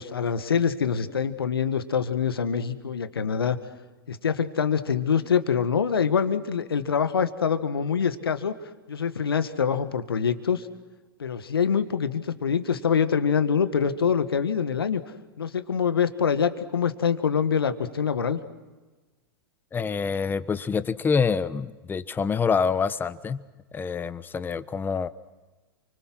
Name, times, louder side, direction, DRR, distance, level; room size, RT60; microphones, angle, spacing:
voice 1, 0.0-3.6 4.1-10.7 11.2-15.0 15.4-18.4, left 7 dB, 80° left, 9 dB, 2.0 m, -25 dB
voice 2, 19.7-23.4 23.7-25.1, left 5 dB, 15° left, 14 dB, 1.2 m, -26 dB
29.5 x 25.0 x 6.3 m, 1.2 s
hypercardioid pair, 105°, 12 cm